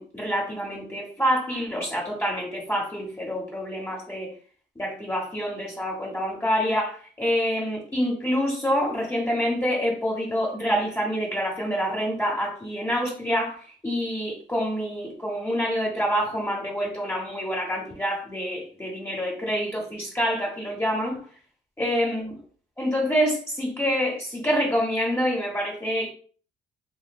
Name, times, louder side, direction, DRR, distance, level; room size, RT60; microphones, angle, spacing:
voice 1, 0.0-4.3 4.8-13.5 13.8-21.2 21.8-22.3 22.8-26.1, equal, 10° left, -4 dB, 1.0 m, -27 dB
3.9 x 2.4 x 2.4 m, 0.43 s
cardioid pair, 90°, 20 cm